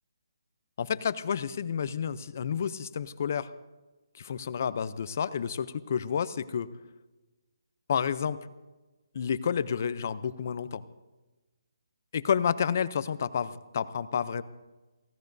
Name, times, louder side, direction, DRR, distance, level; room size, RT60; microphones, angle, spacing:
voice 1, 0.8-3.5 4.1-6.7 7.9-8.5 9.1-10.8 12.1-14.4, left 7 dB, 35° left, 15 dB, 0.6 m, -30 dB
29.5 x 16.5 x 2.7 m, 1.2 s
hypercardioid pair, 175°, 2 cm